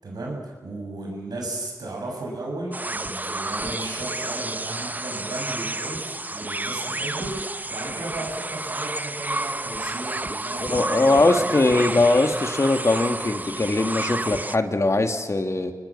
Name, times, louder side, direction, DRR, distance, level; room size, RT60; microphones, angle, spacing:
voice 1, 0.0-12.0, right 2 dB, 90° right, 0 dB, 7.0 m, -35 dB
sound 1, 2.7-14.6, right 2 dB, 25° right, 0.7 m, -30 dB
voice 2, 10.6-15.7, left 2 dB, 50° left, 5 dB, 2.3 m, -21 dB
26.5 x 19.5 x 7.5 m, 1.5 s
cardioid pair, 45°, 7 cm